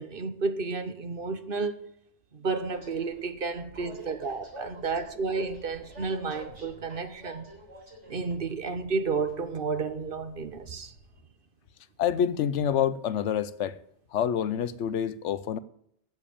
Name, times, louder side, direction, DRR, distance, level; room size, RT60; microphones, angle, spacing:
voice 1, 0.0-1.9 2.3-7.5 8.1-10.9, right 4 dB, 55° right, 1.1 m, -31 dB
Train, 2.6-11.2, equal, 85° right, 4.6 m, -48 dB
voice 2, 12.0-13.8 14.1-15.6, left 9 dB, 85° left, 1.0 m, -27 dB
14.0 x 5.2 x 8.6 m
omnidirectional pair, 1.2 m